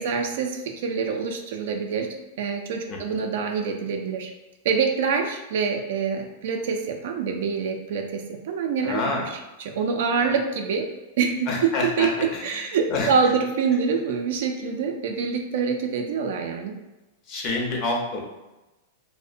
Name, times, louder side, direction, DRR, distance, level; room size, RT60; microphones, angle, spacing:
voice 1, 0.0-2.1 2.4-4.3 4.6-9.2 9.6-10.9 11.2-11.5 12.0-16.7, right 5 dB, 70° right, 4 dB, 0.4 m, -26 dB
voice 2, 2.9-3.2 8.8-9.4 10.2-10.3 11.5-13.1 17.3-18.2, left 3 dB, 45° left, -1 dB, 0.7 m, -28 dB
2.7 x 2.1 x 2.5 m, 1.0 s
hypercardioid pair, 130°, 0 cm